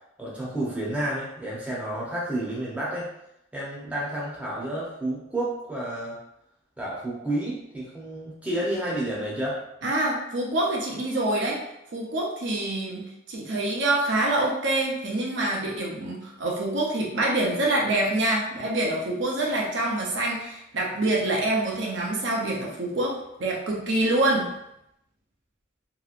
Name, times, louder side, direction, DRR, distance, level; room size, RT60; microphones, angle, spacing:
voice 1, 0.2-3.1 3.5-6.2 6.8-9.6, right 1 dB, 5° right, -7 dB, 0.8 m, -30 dB
voice 2, 9.8-11.6 11.9-24.5, right 1 dB, 65° right, -3 dB, 0.6 m, -26 dB
3.0 x 2.9 x 2.4 m, 0.82 s
head